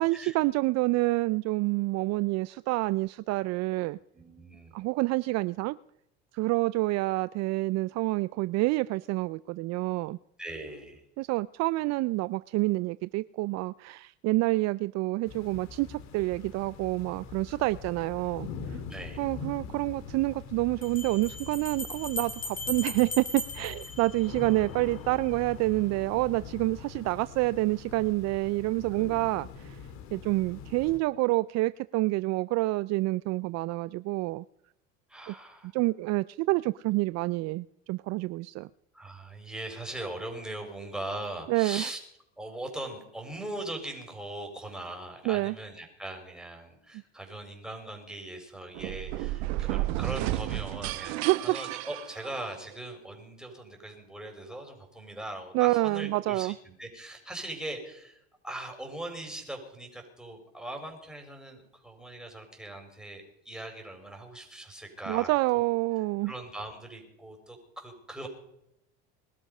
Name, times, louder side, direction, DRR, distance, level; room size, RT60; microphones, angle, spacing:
voice 1, 0.0-4.0 4.7-5.8 6.3-10.2 11.2-18.8 19.2-29.8 30.1-34.4 35.3-35.4 35.7-38.7 41.5-41.9 45.3-45.5 51.1-51.6 55.5-56.5 65.1-66.3, right 21 dB, 55° right, 17 dB, 0.5 m, -28 dB
voice 2, 4.1-4.8 10.4-11.0 18.9-19.2 35.1-35.7 38.9-42.0 42.4-65.6 66.2-68.3, right 1 dB, ahead, 2 dB, 5.2 m, -40 dB
sound 1, 15.2-31.0, left 6 dB, 55° left, 2.5 m, -43 dB
Bell, 19.2-19.3 20.8-24.7, left 2 dB, 25° left, 3.4 m, -38 dB
sound 2, 48.7-52.8, right 16 dB, 75° right, 1.1 m, -32 dB
21.5 x 12.5 x 5.5 m, 0.80 s
supercardioid pair, 95°, 32 cm